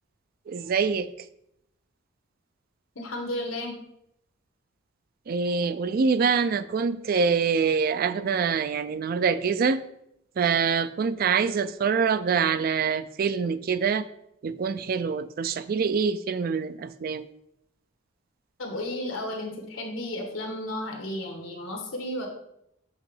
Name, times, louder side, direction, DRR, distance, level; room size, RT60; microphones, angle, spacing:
voice 1, 0.5-1.1 5.3-9.8 10.4-14.1 14.4-17.3, right 5 dB, 50° right, 14 dB, 0.3 m, -25 dB
voice 2, 2.9-3.8 18.6-22.3, left 1 dB, 90° left, 2 dB, 1.6 m, -33 dB
8.2 x 3.0 x 5.4 m, 0.79 s
head